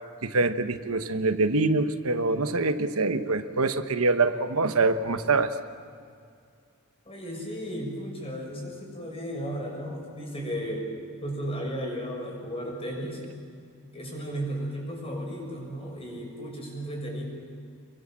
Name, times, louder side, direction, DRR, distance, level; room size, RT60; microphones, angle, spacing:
voice 1, 0.2-5.5, right 3 dB, 80° right, 9 dB, 1.1 m, -25 dB
voice 2, 7.0-10.9 11.2-13.2 13.9-17.2, equal, 30° left, 0 dB, 6.7 m, -34 dB
27.5 x 22.5 x 7.5 m, 2.2 s
head